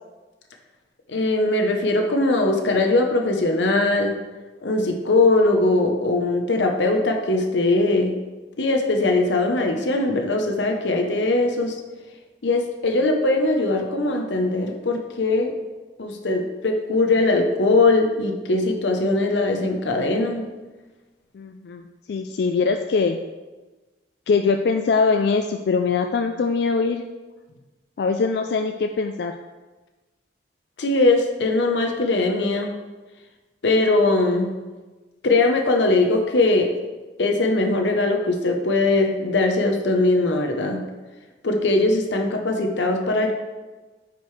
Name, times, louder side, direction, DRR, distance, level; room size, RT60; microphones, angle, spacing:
voice 1, 1.1-4.2 4.6-8.1 8.6-11.8 12.4-15.5 16.0-20.5 30.8-32.7 33.6-34.5 35.2-36.7 37.2-40.8 41.4-43.3, left 2 dB, 80° left, 3 dB, 0.8 m, -20 dB
voice 2, 21.3-23.2 24.3-27.0 28.0-29.3, left 4 dB, 65° left, 6 dB, 0.3 m, -22 dB
9.2 x 5.2 x 3.2 m, 1.2 s
head